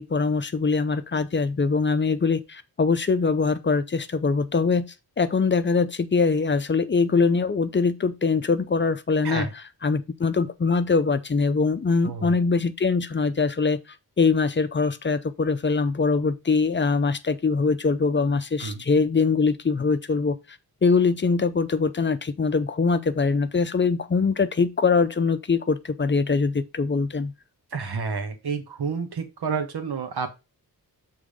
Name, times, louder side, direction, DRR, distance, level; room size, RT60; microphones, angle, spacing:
voice 1, 0.0-9.5 9.8-13.8 14.2-20.4 20.8-27.3, left 4 dB, 30° left, 0.6 m, -23 dB
voice 2, 27.7-30.4, right 5 dB, 80° right, 1.5 m, -30 dB
7.1 x 3.8 x 4.9 m
wide cardioid pair, 145°, 38 cm